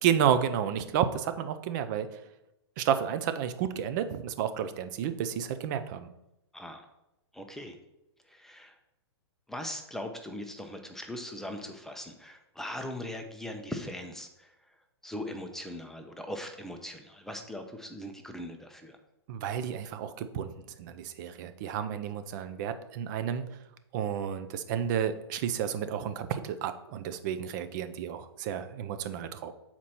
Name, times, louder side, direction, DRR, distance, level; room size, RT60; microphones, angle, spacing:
voice 1, 0.0-2.2 2.8-6.1 19.3-20.5 20.8-23.4 23.9-29.5, right 9 dB, 45° right, 10 dB, 0.6 m, -31 dB
voice 2, 7.3-7.8 8.3-8.7 9.5-14.5 15.0-19.0, left 1 dB, 5° left, 4 dB, 0.6 m, -40 dB
7.3 x 4.4 x 4.2 m, 0.89 s
hypercardioid pair, 120°, 14 cm